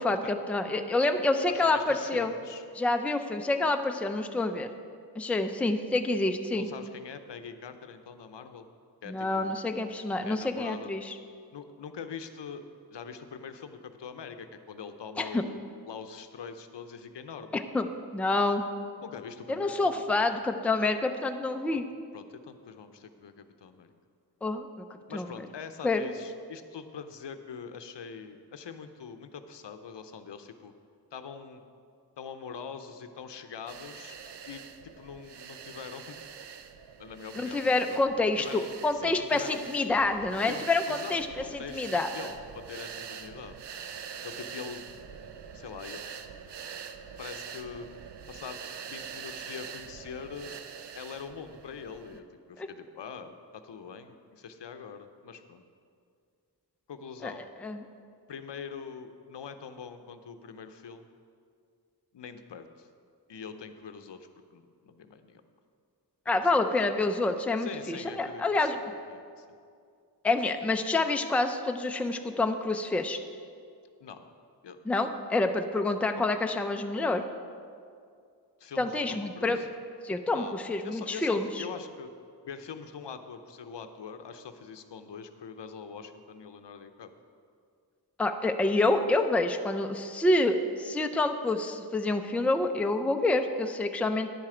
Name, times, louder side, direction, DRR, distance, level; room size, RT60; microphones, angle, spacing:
voice 1, 0.0-2.3 2.8-4.7 5.2-6.7 9.1-11.1 15.2-15.4 17.5-17.8 18.1-18.6 19.5-21.8 24.4-24.8 25.1-25.3 25.8-26.1 37.4-41.3 41.5-42.1 52.6-52.7 57.2-57.3 57.6-57.8 66.3-68.8 70.2-73.2 74.9-77.2 78.8-79.6 80.0-81.6 88.2-94.3, left 2 dB, 5° left, 6 dB, 0.4 m, -27 dB
voice 2, 1.5-2.6 6.5-8.7 9.0-9.5 10.2-10.9 11.5-12.6 12.9-15.6 15.9-17.6 19.0-20.0 20.3-20.4 21.7-21.8 22.1-23.9 25.1-30.7 31.1-31.6 32.2-34.2 34.4-36.2 37.0-38.0 38.4-39.7 40.5-43.6 44.2-44.8 45.5-46.0 47.2-47.9 48.3-50.6 50.9-55.6 56.9-57.4 58.3-61.1 62.1-62.9 63.3-65.4 67.6-68.8 69.1-69.5 74.0-74.2 74.6-74.8 78.6-79.7 80.3-82.1 82.4-87.1, left 6 dB, 80° left, 9 dB, 0.7 m, -43 dB
sound 1, 33.7-52.2, right 7 dB, 75° right, 0.6 m, -44 dB
10.0 x 7.5 x 4.9 m, 2.3 s
wide cardioid pair, 95°, 42 cm